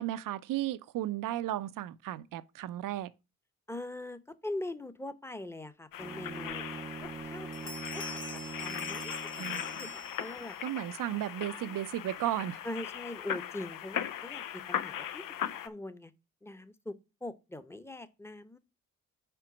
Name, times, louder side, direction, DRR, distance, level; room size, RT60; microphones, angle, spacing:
voice 1, 0.0-3.1 9.4-9.9 10.6-12.6, right 13 dB, 75° right, 0.5 m, -34 dB
voice 2, 3.7-8.0 8.5-10.6 11.5-11.8 12.6-15.2 15.6-16.1 16.4-18.6, left 1 dB, 10° left, 0.8 m, -42 dB
sound 1, 5.9-15.7, left 10 dB, 75° left, 0.6 m, -39 dB
Bowed string instrument, 6.0-10.0, right 5 dB, 20° right, 0.4 m, -43 dB
sound 2, 6.5-6.6 7.0-7.3 7.5-10.7, left 2 dB, 40° left, 1.1 m, -45 dB
4.9 x 4.5 x 6.0 m
supercardioid pair, 45°, 33 cm